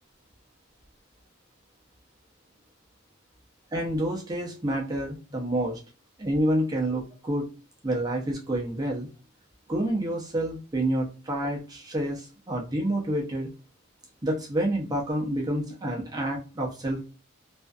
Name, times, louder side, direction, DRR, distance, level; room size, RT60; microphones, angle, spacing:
voice 1, 3.7-5.8 6.2-7.4 7.8-9.1 9.7-13.5 14.2-17.0, right 1 dB, 20° right, -2 dB, 0.5 m, -28 dB
2.5 x 2.3 x 2.3 m, 0.33 s
head